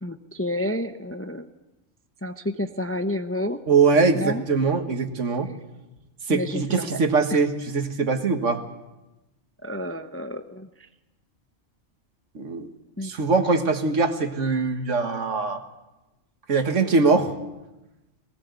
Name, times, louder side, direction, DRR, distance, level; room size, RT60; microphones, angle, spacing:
voice 1, 0.0-1.5 2.2-3.6 4.1-4.4 6.3-6.6 6.9-7.0 7.3-7.4 9.6-10.7 13.0-13.1, left 1 dB, 15° left, 8 dB, 0.5 m, -30 dB
voice 2, 3.7-5.5 6.3-8.6 12.4-12.7 13.0-15.6 16.5-17.3, right 4 dB, 70° right, 7 dB, 1.8 m, -22 dB
18.5 x 18.5 x 8.1 m, 1.0 s
omnidirectional pair, 1.3 m